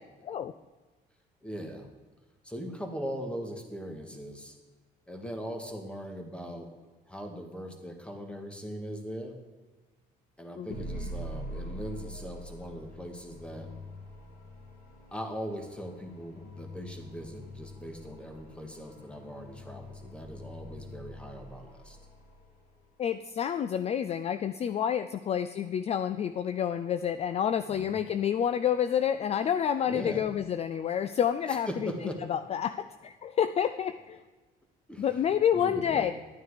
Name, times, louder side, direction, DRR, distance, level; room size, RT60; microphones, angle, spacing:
voice 1, 0.2-0.5 10.6-10.7 23.0-31.9 32.3-34.2 35.0-36.1, left 9 dB, 40° left, 12 dB, 0.4 m, -29 dB
voice 2, 1.4-1.9 2.4-4.6 5.1-6.7 7.1-9.4 10.4-13.7 15.1-22.0 27.7-27.9 29.9-30.2 31.5-32.2 34.9-36.1, equal, 5° left, 4 dB, 1.8 m, -40 dB
sound 1, 10.7-22.9, equal, 65° left, 3.6 m, -44 dB
11.5 x 9.1 x 4.9 m, 1.3 s
cardioid pair, 110°, 17 cm